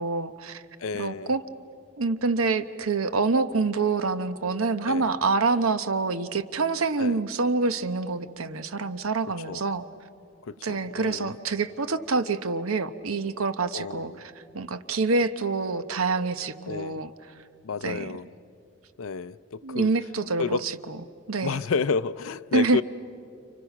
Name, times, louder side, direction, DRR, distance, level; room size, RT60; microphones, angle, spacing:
voice 1, 0.0-0.6 0.9-1.4 2.0-9.8 10.6-14.1 14.5-17.1 17.8-18.1 19.6-20.7 21.3-21.6 22.5-22.8, right 3 dB, 85° right, 0.9 m, -26 dB
voice 2, 0.8-1.3 4.9-5.1 7.0-7.2 9.5-9.6 10.4-11.3 13.7-14.2 16.7-17.0 17.6-18.3 19.0-19.9 20.4-20.7 21.4-22.8, left 5 dB, 80° left, 0.5 m, -31 dB
30.0 x 29.0 x 5.9 m
head